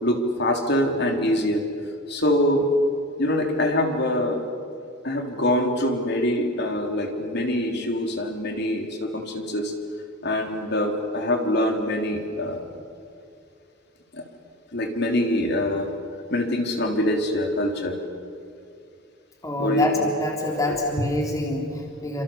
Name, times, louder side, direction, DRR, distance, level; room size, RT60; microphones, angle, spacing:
voice 1, 0.0-1.6 2.1-2.7 3.2-4.4 5.0-9.7 10.2-12.8 14.1-14.2 14.7-15.9 16.3-18.0 19.6-20.1 20.7-20.8, left 1 dB, 55° left, 3 dB, 3.7 m, -24 dB
voice 2, 19.4-22.2, left 1 dB, 15° left, -1 dB, 3.6 m, -26 dB
29.0 x 27.0 x 7.3 m, 2.4 s
head